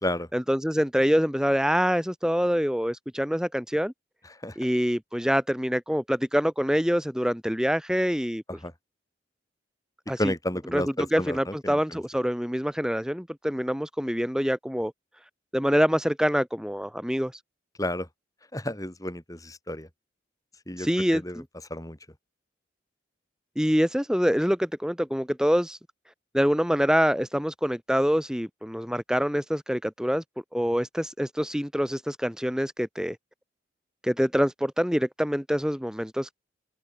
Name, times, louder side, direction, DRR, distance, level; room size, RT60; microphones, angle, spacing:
voice 1, 0.3-3.9 4.6-8.4 10.1-10.3 10.7-14.9 15.5-17.3 20.8-21.4 23.6-25.8 26.3-30.2 30.5-33.2 34.0-36.4, equal, 5° right, 4.9 m, -25 dB
voice 2, 10.2-12.0 17.8-18.1 18.5-19.9 20.7-21.4 21.7-22.0, left 1 dB, 20° left, 5.8 m, -31 dB
head